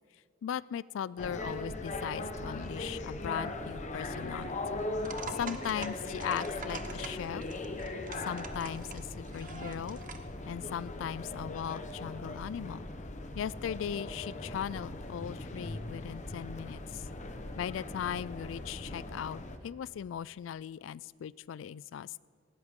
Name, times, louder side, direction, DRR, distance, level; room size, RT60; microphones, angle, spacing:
voice 1, 0.4-4.8 5.4-7.4 8.2-10.0 10.5-12.8 13.3-17.0 17.6-22.3, left 9 dB, 75° left, 21 dB, 0.3 m, -38 dB
sound 1, 1.2-19.6, left 2 dB, 40° left, 1.0 m, -39 dB
sound 2, 5.0-10.3, right 5 dB, 45° right, 0.9 m, -46 dB
18.5 x 18.0 x 3.7 m, 2.2 s
head